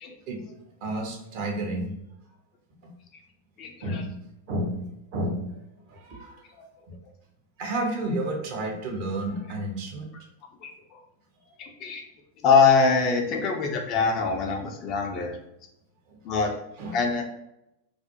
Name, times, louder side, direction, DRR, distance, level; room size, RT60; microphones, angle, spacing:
voice 1, 0.3-2.0 2.8-2.9 3.8-5.6 5.9-6.5 7.6-10.1 11.4-11.5 16.1-16.2 16.8-17.0, right 1 dB, 45° right, 0 dB, 0.6 m, -31 dB
voice 2, 3.6-4.0 10.6-11.0 11.6-12.0 12.4-15.4 16.2-16.5 16.9-17.2, left 5 dB, 35° left, 2 dB, 0.4 m, -23 dB
2.4 x 2.0 x 2.7 m, 0.84 s
figure-of-eight pair, 90°, 0 cm